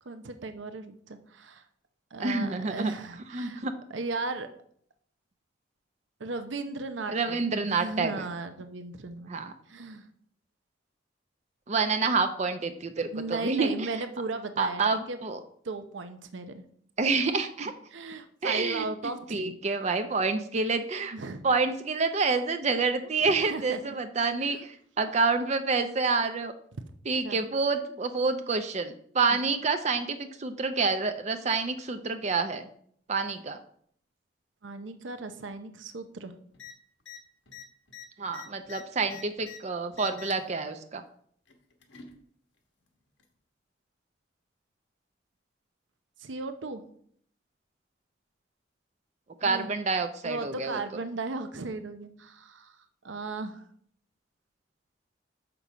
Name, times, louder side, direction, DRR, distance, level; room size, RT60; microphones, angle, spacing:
voice 1, 0.0-1.6 2.1-4.5 6.2-7.4 7.7-9.3 9.7-10.1 13.1-14.8 15.1-15.2 15.6-16.6 17.9-19.5 21.1-21.4 23.0-23.8 24.4-24.6 27.2-27.4 29.3-29.4 34.6-36.3 46.2-46.8 49.4-49.7 50.2-52.8 53.0-53.6, right 3 dB, 85° right, 9 dB, 0.7 m, -36 dB
voice 2, 2.2-2.9 3.3-3.7 7.1-8.3 9.3-9.5 11.7-13.9 14.6-15.4 17.0-17.7 18.4-21.1 21.4-26.5 27.1-32.7 33.1-33.6 38.2-41.0 49.4-50.8, right 4 dB, 35° right, 8 dB, 0.5 m, -28 dB
sound 1, 36.5-36.7 37.0-37.2 37.5-39.6 39.9-40.5 41.5-42.1 43.2-43.3, left 8 dB, 80° left, 1.2 m, -46 dB
6.9 x 5.9 x 4.9 m, 0.63 s
head